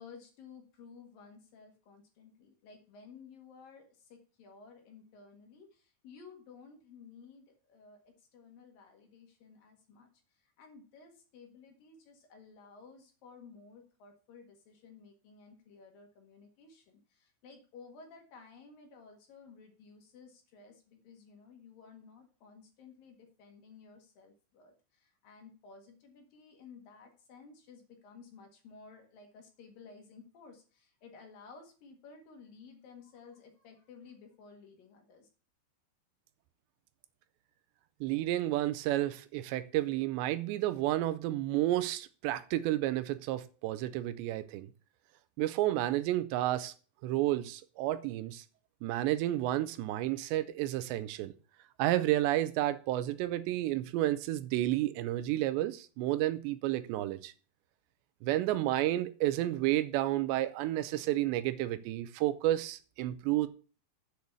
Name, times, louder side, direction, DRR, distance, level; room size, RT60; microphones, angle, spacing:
voice 1, 0.0-10.1 10.6-35.3, left 5 dB, 60° left, 4 dB, 3.1 m, -55 dB
voice 2, 38.0-44.7 45.4-46.7 47.0-48.4 48.8-51.3 51.8-57.3 58.2-63.5, right 14 dB, 80° right, 14 dB, 2.7 m, -31 dB
8.2 x 6.7 x 8.1 m, 0.38 s
omnidirectional pair, 5.3 m